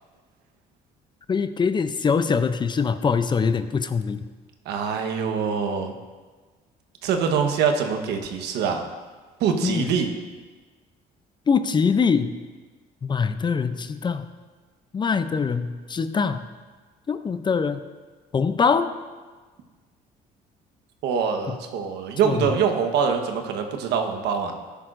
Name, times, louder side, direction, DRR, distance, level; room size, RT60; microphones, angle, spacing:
voice 1, 1.3-4.2 9.6-9.9 11.5-12.3 13.0-14.3 14.9-16.4 17.1-17.8 18.3-18.9 22.2-22.5, left 5 dB, 25° left, 11 dB, 0.5 m, -23 dB
voice 2, 4.7-5.9 7.0-8.8 9.4-10.1 21.0-24.5, right 6 dB, 85° right, 5 dB, 1.2 m, -24 dB
13.5 x 10.5 x 2.6 m, 1.4 s
cardioid pair, 110°, 17 cm